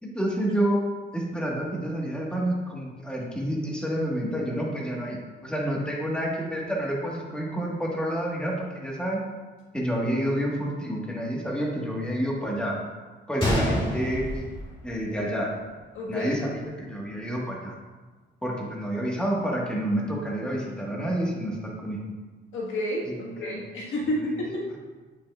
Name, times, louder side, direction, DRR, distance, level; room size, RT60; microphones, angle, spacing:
voice 1, 0.0-0.8 1.1-9.2 9.7-12.8 13.3-14.3 14.8-15.5 16.1-17.8 18.4-22.0 23.0-23.6 24.0-24.3, equal, 5° left, -3 dB, 1.5 m, -29 dB
Gunshot gunfire, 13.4-15.4 15.7-15.8 16.5-16.7, equal, 25° left, 2.0 m, -28 dB
voice 2, 15.9-16.3 22.5-23.1 23.4-24.7, left 1 dB, 80° left, -3 dB, 1.5 m, -30 dB
8.3 x 5.5 x 2.4 m, 1.3 s
cardioid pair, 90°, 20 cm